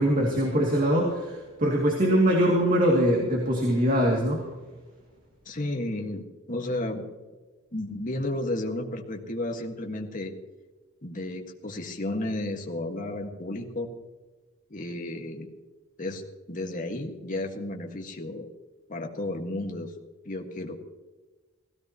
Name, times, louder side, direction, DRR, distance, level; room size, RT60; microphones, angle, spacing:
voice 1, 0.0-4.4, equal, 40° right, -1 dB, 2.4 m, -23 dB
voice 2, 5.4-7.0 7.7-10.3 11.0-13.9 14.7-15.5 16.0-16.2 16.5-18.5 18.9-19.9 20.2-20.7, left 1 dB, 40° left, 2 dB, 1.6 m, -32 dB
18.0 x 17.0 x 3.0 m, 1.3 s
head